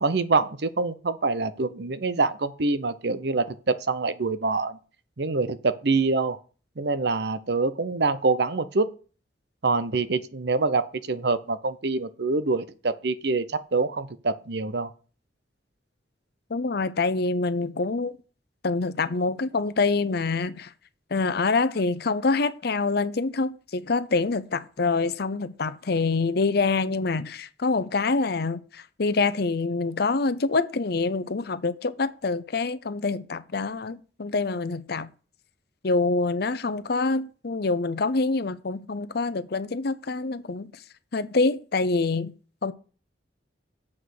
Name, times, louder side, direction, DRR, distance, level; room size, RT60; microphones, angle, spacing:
voice 1, 0.0-4.8 5.2-6.4 6.8-8.9 9.6-14.9, right 3 dB, 65° right, 0.8 m, -25 dB
voice 2, 16.5-18.2 18.6-20.7 21.1-35.1 35.8-40.8 41.1-42.3 42.6-42.7, left 3 dB, 60° left, 0.7 m, -26 dB
7.5 x 6.1 x 6.5 m
head